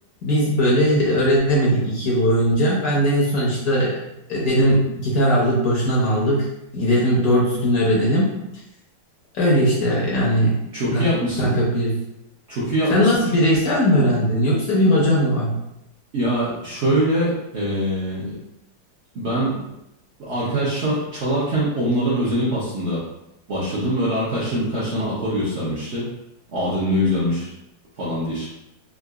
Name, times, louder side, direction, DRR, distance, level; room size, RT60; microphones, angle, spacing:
voice 1, 0.2-3.9 4.3-6.4 6.7-8.3 9.3-10.5 10.9-11.1 11.4-11.9 12.9-15.5, equal, 60° left, -5 dB, 1.1 m, -19 dB
voice 2, 10.7-11.6 12.5-13.1 16.1-18.4 19.1-19.5 20.2-23.0 23.5-26.0 26.5-27.5 28.0-28.5, equal, 55° right, -8 dB, 0.8 m, -23 dB
3.8 x 2.4 x 2.3 m, 0.86 s
omnidirectional pair, 2.0 m